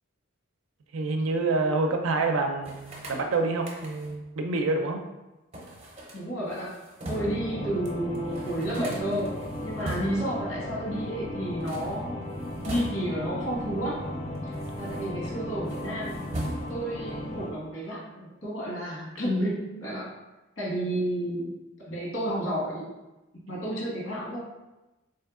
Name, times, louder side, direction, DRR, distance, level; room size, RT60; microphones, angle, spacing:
voice 1, 0.9-5.0, right 3 dB, 80° right, 4 dB, 0.4 m, -27 dB
sound 1, 2.6-4.3 5.5-7.5 7.9-8.0 8.1-10.4 11.5-13.3 14.0-15.3 15.6-17.0, right 1 dB, 30° right, 0.6 m, -40 dB
voice 2, 6.1-6.7 7.1-9.3 9.6-12.2 12.6-14.0 14.4-14.5 14.8-16.2 16.7-20.1 20.6-21.5 21.8-22.9 23.5-24.4, right 1 dB, 80° left, -5 dB, 1.4 m, -31 dB
sound 2, 7.1-17.5, left 1 dB, 30° left, 0.4 m, -36 dB
3.5 x 2.7 x 3.5 m, 1.0 s
head